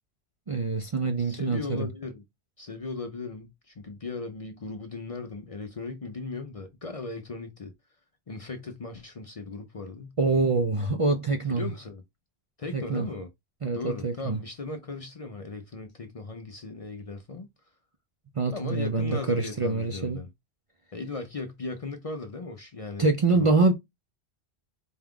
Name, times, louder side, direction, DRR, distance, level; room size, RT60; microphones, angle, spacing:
voice 1, 0.5-1.9 10.2-11.7 12.7-13.0 13.6-14.4 18.3-20.2 23.0-23.7, right 3 dB, 45° right, 0.5 m, -25 dB
voice 2, 1.2-2.2 2.6-7.7 8.3-10.2 11.5-12.0 12.6-13.3 13.7-17.5 18.5-20.3 20.9-23.1 23.3-23.7, left 3 dB, 40° left, 0.6 m, -37 dB
4.4 x 2.3 x 3.5 m
omnidirectional pair, 1.1 m